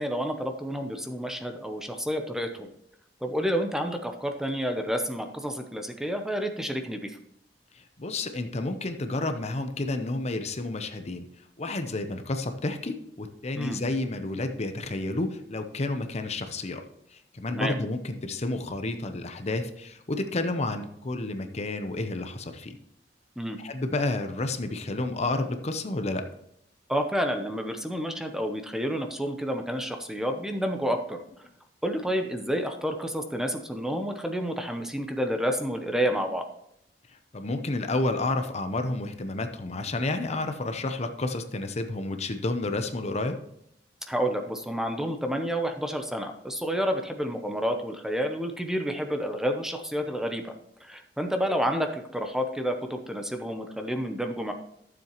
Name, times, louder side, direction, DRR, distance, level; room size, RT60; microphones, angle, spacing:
voice 1, 0.0-2.7 3.2-7.2 13.6-13.8 17.5-17.8 23.4-23.6 26.9-31.2 31.8-36.5 44.1-50.5 50.8-54.5, equal, 5° right, 5 dB, 0.7 m, -29 dB
voice 2, 7.7-11.3 11.6-16.8 17.1-22.8 23.6-26.2 37.3-43.4, left 2 dB, 40° left, 7 dB, 0.7 m, -30 dB
12.5 x 7.2 x 3.0 m, 0.74 s
head